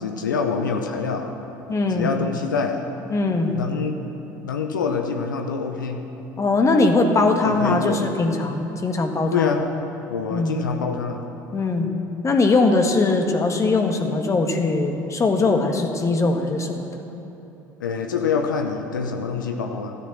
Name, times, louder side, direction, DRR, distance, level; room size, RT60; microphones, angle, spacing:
voice 1, 0.0-1.4 1.9-2.8 3.5-4.0 4.4-6.0 7.4-8.0 9.3-9.7 10.1-11.2 17.8-19.9, left 5 dB, 85° left, 5 dB, 0.8 m, -25 dB
voice 2, 1.7-2.1 3.1-3.5 6.4-9.5 10.3-10.6 11.5-11.9 12.2-16.9, left 3 dB, 30° left, 4 dB, 1.5 m, -21 dB
13.0 x 10.0 x 7.6 m, 3.0 s
hypercardioid pair, 65°, 10 cm